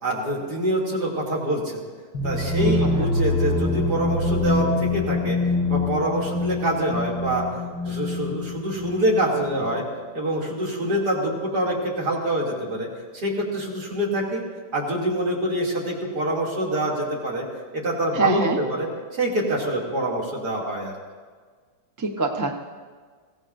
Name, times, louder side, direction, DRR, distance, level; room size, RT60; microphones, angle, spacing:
voice 1, 0.0-1.8 2.2-5.4 5.7-7.4 7.8-9.8 10.1-12.9 13.1-14.4 14.7-17.4 17.7-18.9 19.2-20.9, right 1 dB, 50° right, -4 dB, 3.4 m, -25 dB
sound 1, 2.1-9.8, left 2 dB, 65° left, 6.2 m, -25 dB
voice 2, 18.1-18.6 22.0-22.5, right 2 dB, 20° right, 1 dB, 0.5 m, -24 dB
22.5 x 16.5 x 2.7 m, 1.5 s
omnidirectional pair, 2.3 m